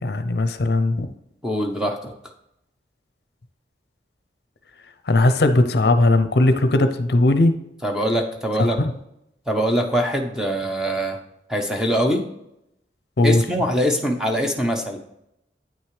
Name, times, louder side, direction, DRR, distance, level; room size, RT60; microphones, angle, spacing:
voice 1, 0.0-1.1 5.1-7.6 8.6-8.9 13.2-13.4, left 2 dB, 65° left, 9 dB, 0.6 m, -18 dB
voice 2, 1.4-2.1 7.8-8.8 9.5-11.2 11.5-12.2 13.2-15.0, equal, 5° right, 2 dB, 0.9 m, -23 dB
8.9 x 6.3 x 3.2 m, 0.82 s
head